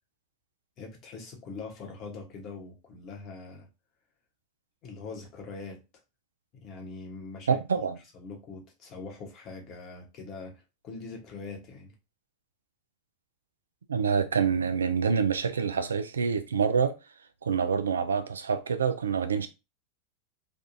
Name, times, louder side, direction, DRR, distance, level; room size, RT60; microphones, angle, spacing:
voice 1, 0.8-3.7 4.8-5.8 6.5-7.6 8.1-11.9, left 4 dB, 45° left, 1.2 m, -42 dB
voice 2, 7.5-8.0 13.9-17.0 17.4-19.5, right 6 dB, 90° right, 0.4 m, -26 dB
3.4 x 2.4 x 2.7 m
hypercardioid pair, 95°, 0 cm